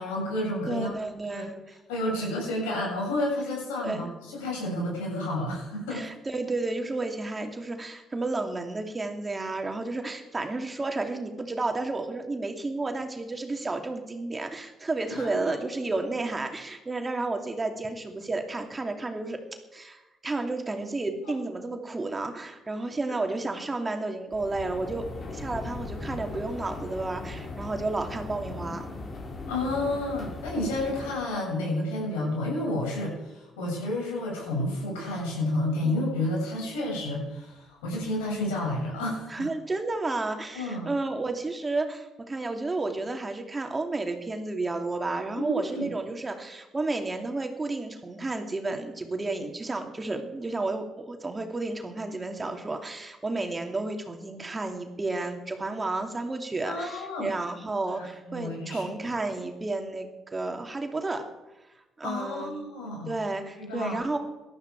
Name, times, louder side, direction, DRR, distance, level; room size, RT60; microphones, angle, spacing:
voice 1, 0.0-0.9 1.3-1.5 1.9-6.0 15.2-15.5 29.5-39.5 40.5-40.9 45.4-45.9 56.7-57.3 57.8-57.9 58.3-58.9 62.0-63.1 63.6-64.1, left 1 dB, 90° left, -2 dB, 7.2 m, -30 dB
voice 2, 0.7-1.8 3.8-4.1 5.9-19.4 19.7-25.1 25.3-28.8 39.3-61.2 62.0-62.6 63.1-64.2, right 2 dB, 25° right, 4 dB, 2.7 m, -32 dB
sound 1, 24.3-31.1, left 3 dB, 50° left, 4.1 m, -38 dB
18.0 x 12.5 x 4.8 m, 1.0 s
hypercardioid pair, 55°, 0 cm